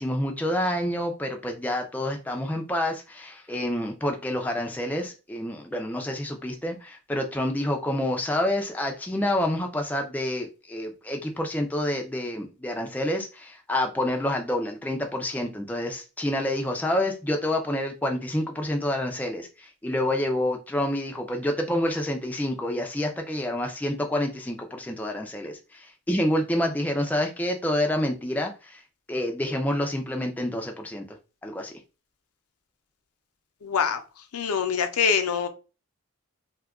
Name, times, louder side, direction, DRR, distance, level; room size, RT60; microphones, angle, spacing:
voice 1, 0.0-28.8 29.1-31.1 31.4-31.7, left 1 dB, 5° left, 0.3 m, -28 dB
voice 2, 33.6-34.0 34.3-35.5, left 6 dB, 90° left, 0.6 m, -24 dB
2.7 x 2.3 x 3.5 m
head